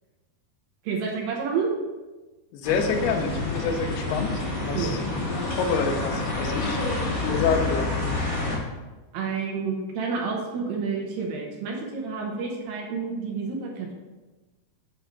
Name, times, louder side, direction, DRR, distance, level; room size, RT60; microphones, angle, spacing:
voice 1, 0.8-1.7 4.7-4.9 9.1-13.9, right 5 dB, 75° right, 0 dB, 2.4 m, -29 dB
voice 2, 2.5-6.8 7.2-7.9 8.1-8.2, left 5 dB, 80° left, 6 dB, 2.6 m, -28 dB
sound 1, 2.6-8.6, left 2 dB, 20° left, 1.2 m, -28 dB
8.8 x 3.4 x 5.0 m, 1.2 s
omnidirectional pair, 4.7 m